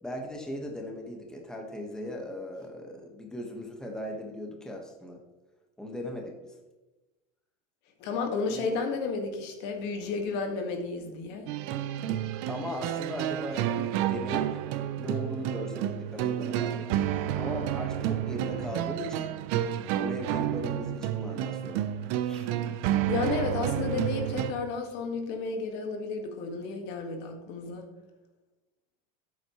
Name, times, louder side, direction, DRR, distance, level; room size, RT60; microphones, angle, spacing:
voice 1, 0.0-5.2 5.8-6.5 8.5-8.7 12.5-14.6 15.0-19.3 20.0-21.8 22.2-22.5, left 1 dB, 5° left, 1 dB, 1.5 m, -38 dB
voice 2, 8.0-11.5 23.1-27.8, left 4 dB, 60° left, 4 dB, 1.9 m, -32 dB
sound 1, 11.5-24.5, right 11 dB, 65° right, 0.7 m, -30 dB
12.0 x 8.8 x 3.2 m, 1.1 s
supercardioid pair, 135°, 20 cm